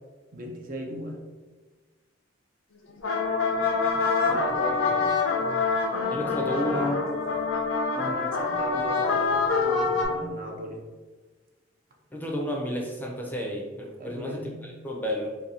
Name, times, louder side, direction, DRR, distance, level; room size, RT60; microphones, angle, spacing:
voice 1, 0.3-1.2 4.2-5.2 7.9-10.8 14.0-14.8, equal, 45° right, 2 dB, 0.5 m, -37 dB
sound 1, 2.9-10.0, left 4 dB, 85° left, 0.6 m, -25 dB
voice 2, 6.1-7.1 12.1-15.3, left 1 dB, 10° left, -1 dB, 0.5 m, -31 dB
2.8 x 2.7 x 4.0 m, 1.3 s
head